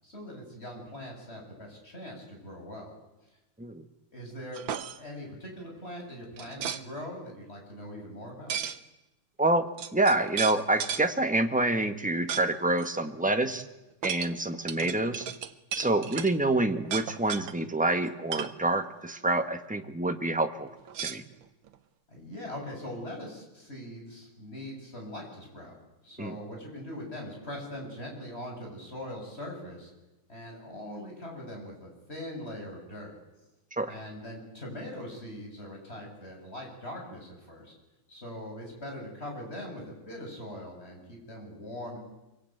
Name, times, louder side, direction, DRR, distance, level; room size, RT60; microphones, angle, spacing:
voice 1, 0.0-2.9 4.1-4.6 5.0-8.5 22.1-25.8 26.0-29.9 30.3-33.1 33.9-37.7 38.1-42.0, left 1 dB, 25° left, 0 dB, 7.6 m, -41 dB
sound 1, 4.5-5.0 6.4-6.8 8.5-8.8 9.5-9.6 9.8-11.1 12.3-12.5 12.8-12.9 14.0-16.3 16.8-17.5 18.0-18.6 20.9-21.7, right 8 dB, 65° right, 1.8 m, -35 dB
voice 2, 9.9-13.6 14.0-15.3 15.7-20.7 21.0-21.2 26.2-26.4 33.8-33.9, right 2 dB, 5° right, 6 dB, 1.0 m, -27 dB
25.5 x 23.0 x 9.3 m, 1.0 s
omnidirectional pair, 2.4 m